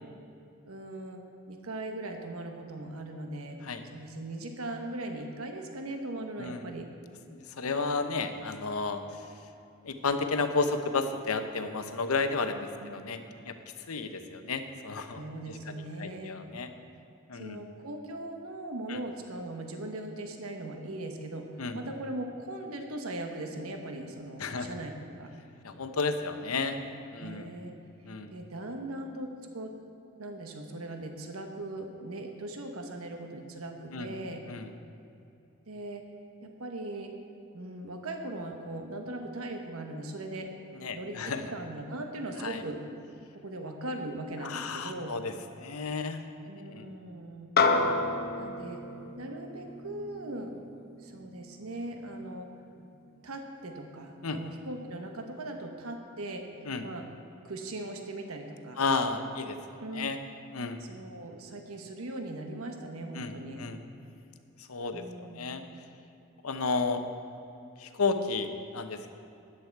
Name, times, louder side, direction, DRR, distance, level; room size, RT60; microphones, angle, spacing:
voice 1, 0.6-1.2 1.5-3.6 3.9-6.9 12.8-13.2 15.1-16.3 17.3-21.5 21.7-25.3 27.2-27.7 28.3-29.7 30.2-34.4 35.7-36.0 36.4-37.1 37.5-40.5 40.9-42.8 43.3-45.1 46.5-47.5 48.4-48.8 49.2-50.6 51.0-52.5 52.7-56.4 56.8-57.1 57.4-58.8 59.8-60.1 60.9-63.6 64.9-65.6, right 1 dB, 80° right, 4 dB, 1.1 m, -39 dB
voice 2, 7.3-9.3 9.8-13.2 13.4-13.5 13.9-15.2 15.5-16.7 17.3-17.6 18.9-19.0 21.6-21.8 24.4-24.7 25.6-26.8 27.1-27.5 28.0-28.3 33.9-34.1 34.5-34.7 40.7-41.4 42.4-42.6 44.4-46.2 46.7-46.9 54.2-54.4 56.6-56.9 58.8-60.2 60.5-60.8 63.1-63.8 64.6-65.6 66.4-67.0 67.8-69.1, left 4 dB, 85° left, 8 dB, 0.9 m, -32 dB
sound 1, 47.6-52.2, left 3 dB, 45° left, 0.8 m, -30 dB
13.0 x 10.5 x 4.7 m, 2.8 s
head